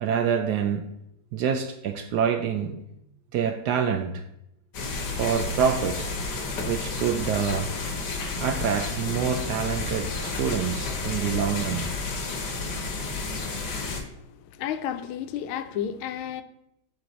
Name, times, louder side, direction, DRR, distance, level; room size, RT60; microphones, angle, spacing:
voice 1, 0.0-0.9 1.3-2.8 3.3-4.2 5.1-6.1 6.6-7.7 8.4-11.9, right 7 dB, 80° right, 0.9 m, -26 dB
sound 1, 4.7-14.0, left 3 dB, 60° left, 1.6 m, -31 dB
voice 2, 14.6-16.4, left 9 dB, 85° left, 1.5 m, -31 dB
10.5 x 4.6 x 4.1 m
omnidirectional pair, 2.3 m